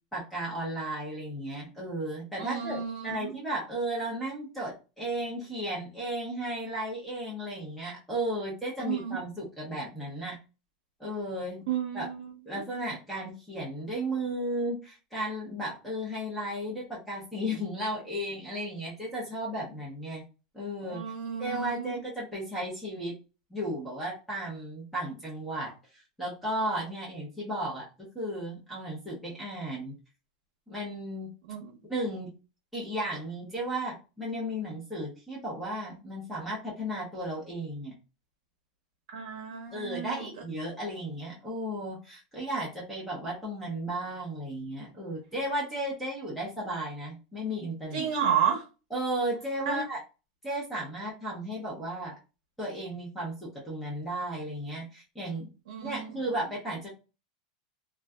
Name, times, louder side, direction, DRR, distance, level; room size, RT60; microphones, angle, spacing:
voice 1, 0.1-10.4 11.0-11.6 11.9-12.1 12.5-20.2 20.5-21.0 21.4-23.1 23.5-27.9 28.1-29.9 30.7-31.3 31.9-32.3 32.7-37.9 39.7-48.1 48.9-50.0 50.4-52.1 52.6-55.5 55.8-56.9, right 1 dB, 5° left, -6 dB, 0.7 m, -34 dB
voice 2, 2.4-3.3 8.8-9.2 11.7-12.3 20.9-22.0 31.5-31.8 39.1-40.3 47.9-48.6 49.7-49.8 55.7-56.3, right 8 dB, 70° right, 0 dB, 0.6 m, -32 dB
2.5 x 2.3 x 2.2 m, 0.31 s
supercardioid pair, 150°, 4 cm